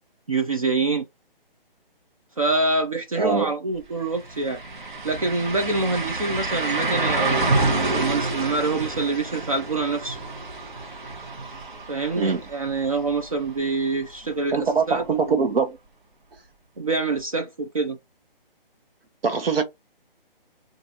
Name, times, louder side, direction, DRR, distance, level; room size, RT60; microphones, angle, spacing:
voice 1, 0.3-1.1 2.4-4.6 5.0-7.5 7.8-10.2 11.9-15.3 16.8-18.0, right 3 dB, 40° right, 0.4 m, -26 dB
voice 2, 3.2-3.5 12.2-12.4 14.5-15.8 19.2-19.6, right 5 dB, 75° right, 1.0 m, -22 dB
sound 1, 3.7-3.8 4.2-13.9 14.3-14.4 17.2-17.3, right 2 dB, 55° right, 1.1 m, -28 dB
2.6 x 2.5 x 4.1 m
hypercardioid pair, 170°, 29 cm